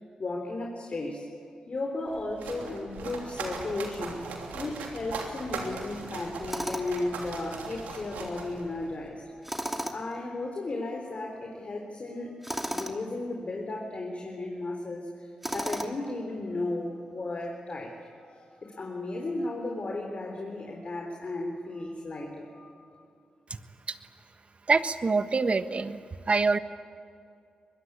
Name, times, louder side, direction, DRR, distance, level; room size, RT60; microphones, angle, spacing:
voice 1, 0.2-1.3 1.7-9.5 9.9-12.4 12.7-23.0, left 2 dB, 50° left, 1 dB, 4.0 m, -35 dB
sound 1, 2.1-9.1, right 4 dB, 85° right, 3.1 m, -39 dB
Tools, 6.5-7.1 9.4-10.2 12.4-13.0 15.4-16.1, equal, 5° right, 2.8 m, -34 dB
voice 2, 24.7-26.6, right 4 dB, 50° right, 11 dB, 1.4 m, -25 dB
24.0 x 21.5 x 8.6 m, 2.4 s
supercardioid pair, 40°, 3 cm